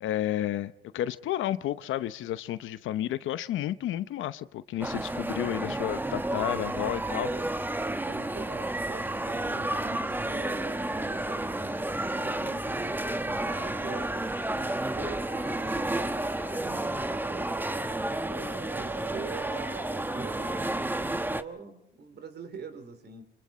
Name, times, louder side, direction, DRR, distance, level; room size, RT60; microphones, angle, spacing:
voice 1, 0.0-7.3, left 12 dB, 80° left, 14 dB, 0.8 m, -31 dB
sound 1, 4.8-21.4, right 1 dB, 10° right, 1.0 m, -31 dB
voice 2, 5.3-5.6 7.2-7.5 7.8-12.6 13.1-17.6 18.3-23.2, right 4 dB, 55° right, 9 dB, 3.6 m, -44 dB
Musical instrument, 7.9-21.3, right 3 dB, 35° right, 4.3 m, -45 dB
25.0 x 25.0 x 4.3 m, 0.81 s
cardioid pair, 90°, 20 cm